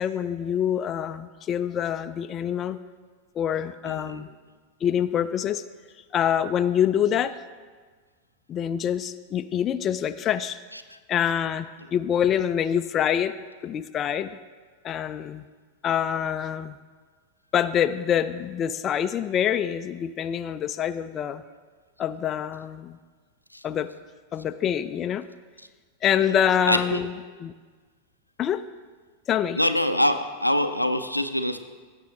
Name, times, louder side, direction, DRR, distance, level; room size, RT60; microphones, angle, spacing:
voice 1, 0.0-2.8 3.4-4.3 4.8-5.6 6.1-7.4 8.5-10.6 11.1-13.3 13.6-14.4 14.8-15.4 15.8-16.8 17.5-21.4 22.0-23.0 23.6-23.9 24.3-25.2 26.0-27.1 27.4-27.5 28.4-28.6 29.3-29.6, left 9 dB, 30° left, 11 dB, 0.4 m, -25 dB
voice 2, 3.9-4.2 10.7-10.8 23.5-23.6 26.7-27.0 29.6-31.6, left 1 dB, 90° left, 8 dB, 0.5 m, -24 dB
17.0 x 7.4 x 3.0 m, 1.5 s
figure-of-eight pair, 90°, 0 cm